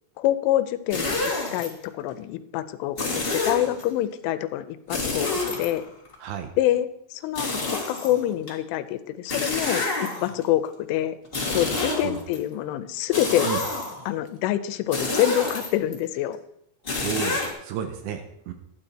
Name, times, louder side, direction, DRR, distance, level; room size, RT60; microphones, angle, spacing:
voice 1, 0.2-5.8 6.6-9.9 10.2-11.2 11.5-13.5 14.1-16.4, left 13 dB, 85° left, 10 dB, 3.1 m, -26 dB
sound 1, 0.9-1.7 3.0-3.8 4.9-6.1 7.3-8.5 9.3-10.4 11.2-12.4 13.1-14.1 14.9-15.9 16.8-17.5, left 3 dB, 50° left, 0.7 m, -28 dB
voice 2, 6.2-6.5 11.7-12.2 13.4-13.6 16.9-18.5, right 8 dB, 80° right, 8 dB, 2.9 m, -33 dB
12.0 x 9.0 x 4.4 m, 0.78 s
omnidirectional pair, 5.6 m